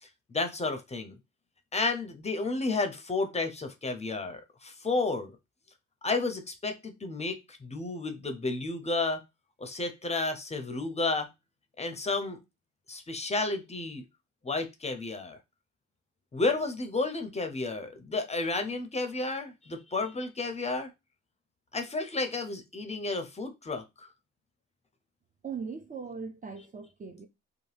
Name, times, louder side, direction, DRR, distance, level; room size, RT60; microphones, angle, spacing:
voice 1, 0.3-1.1 1.7-5.3 6.0-9.2 9.6-11.3 11.8-12.4 12.9-14.0 14.4-15.4 16.3-20.9 21.7-23.8, left 3 dB, 20° left, 0.5 m, -31 dB
voice 2, 25.4-27.3, right 5 dB, 25° right, 0.4 m, -39 dB
2.7 x 2.2 x 3.2 m
cardioid pair, 90°, 30 cm